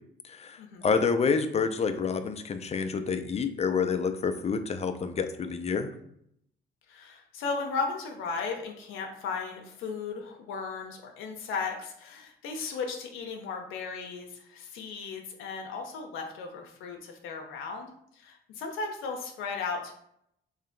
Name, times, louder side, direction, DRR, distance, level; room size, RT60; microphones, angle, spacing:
voice 1, 0.3-5.9, left 5 dB, 35° left, 9 dB, 0.4 m, -28 dB
voice 2, 6.9-19.9, left 4 dB, 90° left, 2 dB, 0.6 m, -36 dB
3.2 x 2.8 x 3.8 m, 0.73 s
cardioid pair, 90°, 20 cm